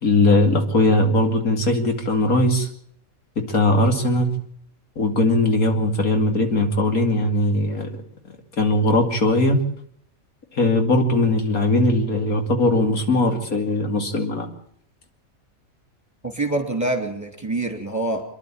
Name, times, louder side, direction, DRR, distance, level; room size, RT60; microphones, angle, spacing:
voice 1, 0.0-2.7 3.5-4.3 5.0-7.9 8.6-9.6 10.5-14.5, left 2 dB, 80° left, 4 dB, 3.0 m, -19 dB
voice 2, 16.2-18.2, right 2 dB, 10° right, 5 dB, 2.7 m, -25 dB
27.5 x 11.0 x 8.7 m, 0.66 s
omnidirectional pair, 1.5 m